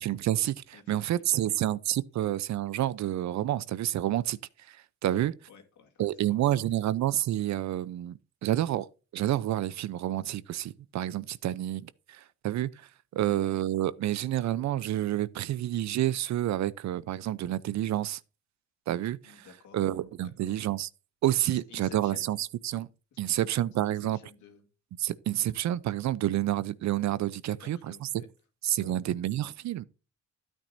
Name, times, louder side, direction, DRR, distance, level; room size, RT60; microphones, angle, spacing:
voice 1, 0.0-4.4 5.0-5.3 6.0-8.9 9.1-12.7 13.1-18.2 18.9-19.5 19.7-20.9 21.2-22.9 23.2-24.2 25.0-28.1 28.6-29.8, right 13 dB, 65° right, 0.6 m, -29 dB
voice 2, 0.7-1.5 5.0-6.5 13.2-13.4 19.2-19.8 20.2-20.5 21.4-22.3 23.1-24.6 27.5-28.3 28.8-29.0, left 6 dB, 75° left, 2.6 m, -52 dB
13.0 x 8.9 x 2.6 m
cardioid pair, 90°, 30 cm